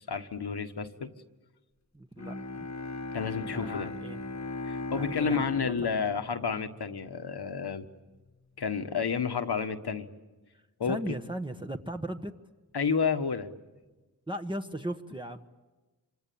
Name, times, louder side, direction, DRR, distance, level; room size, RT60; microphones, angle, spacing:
voice 1, 0.1-1.1 3.1-3.9 4.6-7.9 8.6-10.1 10.8-11.0 12.7-13.5, left 6 dB, 90° left, 8 dB, 1.5 m, -30 dB
voice 2, 1.9-2.7 3.5-4.2 4.9-5.9 10.8-12.3 14.3-15.5, right 1 dB, 15° right, 5 dB, 1.3 m, -37 dB
Bowed string instrument, 2.2-7.4, left 2 dB, 45° left, 1.4 m, -38 dB
26.0 x 25.5 x 8.7 m, 1.2 s
wide cardioid pair, 60°, 38 cm